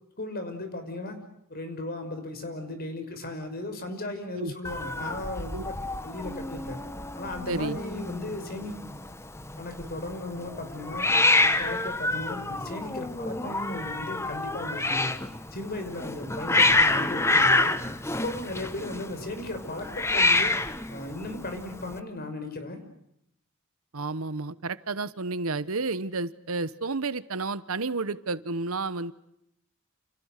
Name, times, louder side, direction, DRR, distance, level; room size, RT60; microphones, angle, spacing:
voice 1, 0.2-1.2 1.5-5.8 6.0-6.8 7.2-8.8 9.6-11.1 11.4-15.1 15.5-17.7 18.2-20.6 20.9-22.8, left 2 dB, 45° left, 7 dB, 5.8 m, -36 dB
Hiss, 4.6-22.0, left 2 dB, 10° left, 1.1 m, -27 dB
voice 2, 7.5-7.8 23.9-29.1, right 3 dB, 80° right, 15 dB, 1.1 m, -31 dB
29.5 x 29.0 x 6.6 m, 0.77 s
head